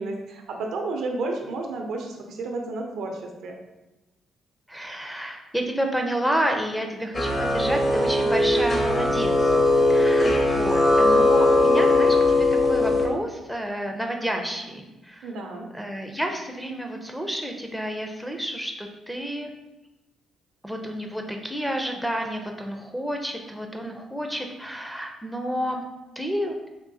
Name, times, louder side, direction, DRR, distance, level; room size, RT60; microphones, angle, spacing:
voice 1, 0.0-3.6 15.2-15.7, right 3 dB, 80° right, 2 dB, 0.6 m, -31 dB
voice 2, 4.7-9.5 9.9-12.4 12.6-15.3 15.7-19.5 20.6-25.8 26.2-26.6, equal, ahead, 2 dB, 0.4 m, -30 dB
sound 1, 7.1-13.1, left 2 dB, 40° left, 0.8 m, -20 dB
3.6 x 2.7 x 2.6 m, 1.0 s
cardioid pair, 90°, 0 cm